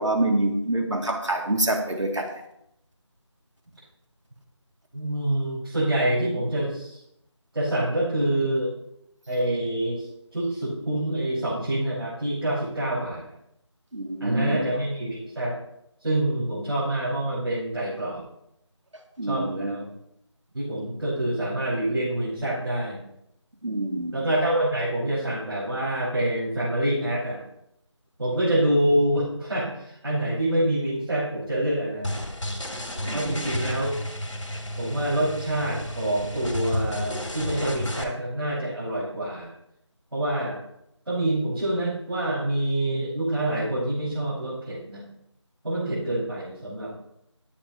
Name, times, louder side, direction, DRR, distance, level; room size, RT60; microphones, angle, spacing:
voice 1, 0.0-2.4 13.9-14.7 19.2-19.8 23.6-24.3 33.1-33.4, right 1 dB, 80° right, 2 dB, 2.6 m, -26 dB
voice 2, 4.9-7.0 7.5-8.7 9.3-10.1 10.3-13.2 14.2-15.6 16.0-18.2 19.3-19.9 20.5-23.0 24.1-27.4 28.2-32.2 33.1-33.9 34.8-39.5 40.1-40.6 41.1-45.0 45.6-46.9, right 1 dB, 55° right, -9 dB, 5.5 m, -26 dB
sound 1, 32.0-38.0, equal, 80° left, 2.8 m, -32 dB
20.5 x 8.7 x 3.0 m, 0.79 s
figure-of-eight pair, 170°, 16 cm